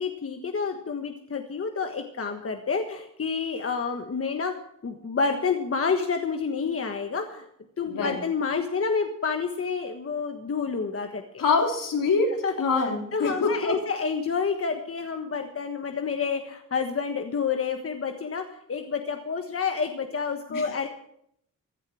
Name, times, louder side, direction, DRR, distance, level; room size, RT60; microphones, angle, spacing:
voice 1, 0.0-4.5 4.8-7.5 7.8-11.4 12.4-20.9, left 5 dB, 45° left, 5 dB, 1.4 m, -29 dB
voice 2, 7.9-8.2 11.4-13.8 20.5-20.7, left 4 dB, 75° left, 1 dB, 3.9 m, -25 dB
16.0 x 10.5 x 6.3 m, 0.71 s
cardioid pair, 80°, 33 cm